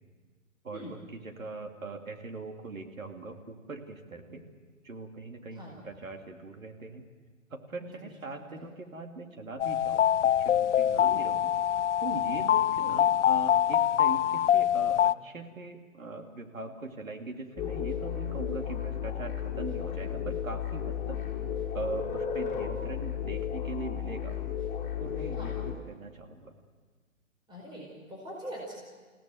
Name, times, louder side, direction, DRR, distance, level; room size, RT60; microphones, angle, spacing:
voice 1, 0.6-4.4 4.8-7.0 7.5-11.5 12.0-21.2 21.7-24.4 25.0-25.5 25.9-26.5, right 3 dB, 80° right, 3 dB, 3.0 m, -41 dB
voice 2, 5.5-5.8 7.8-8.8 9.3-9.4 11.0-11.2 12.8-13.0 25.4-25.5 27.5-28.7, equal, 10° right, -3 dB, 5.0 m, -44 dB
sound 1, 9.6-15.1, left 10 dB, 60° left, 0.6 m, -25 dB
sound 2, 17.6-25.7, left 8 dB, 20° left, 4.0 m, -34 dB
29.5 x 17.0 x 7.9 m, 1.5 s
figure-of-eight pair, 125°, 40 cm